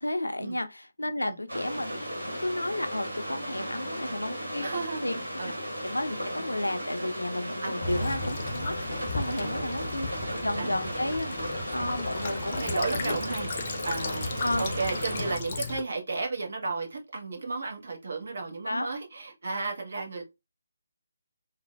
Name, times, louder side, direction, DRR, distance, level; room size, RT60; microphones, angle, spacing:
voice 1, 0.0-4.7 5.0-5.2 5.8-10.1 10.4-11.3 11.7-13.2 14.4-14.6 18.7-18.9, left 1 dB, 85° left, 0.4 m, -32 dB
sound 1, 1.5-15.4, equal, 90° right, 1.1 m, -35 dB
voice 2, 3.6-4.1 4.6-5.1 5.4-5.6 7.6-7.9 9.3-9.7 10.6-10.9 12.5-13.5 13.8-20.2, right 3 dB, 55° right, 0.9 m, -34 dB
Child speech kid speaking / Bird vocalization bird call bird song / Stream, 7.8-15.8, left 3 dB, 35° left, 0.5 m, -35 dB
3.2 x 2.1 x 2.2 m
figure-of-eight pair, 150°, 0 cm